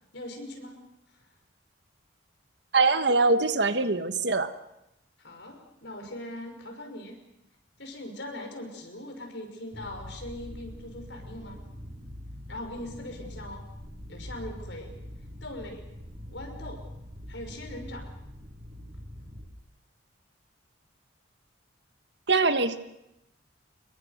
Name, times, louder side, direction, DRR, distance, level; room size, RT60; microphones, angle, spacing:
voice 1, 0.1-0.8 5.2-7.2 7.8-11.6 12.5-13.6 14.1-15.0 15.4-15.8 16.3-16.8 17.3-18.1, left 1 dB, 65° left, 4 dB, 5.9 m, -40 dB
voice 2, 2.7-4.5 22.3-22.8, right 3 dB, 60° right, 10 dB, 1.4 m, -23 dB
sound 1, 9.7-19.5, equal, 30° right, 7.0 m, -43 dB
26.5 x 22.5 x 6.7 m, 0.86 s
head